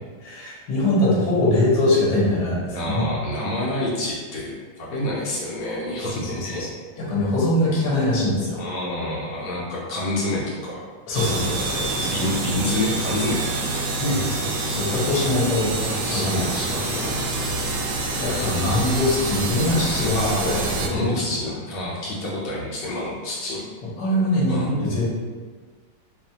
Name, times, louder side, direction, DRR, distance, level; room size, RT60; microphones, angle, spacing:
voice 1, 0.2-3.0 6.2-6.7 7.0-8.6 11.1-12.1 14.0-16.4 16.8-17.0 18.2-21.3 24.0-25.1, left 1 dB, 60° left, -6 dB, 1.6 m, -23 dB
voice 2, 2.7-6.7 8.6-10.9 12.0-13.7 14.1-14.5 16.0-17.4 20.1-23.6 24.5-24.7, left 1 dB, 85° left, -6 dB, 1.6 m, -28 dB
sound 1, 11.1-20.9, right 2 dB, 75° right, 1.1 m, -26 dB
5.0 x 2.4 x 2.8 m, 1.5 s
omnidirectional pair, 2.2 m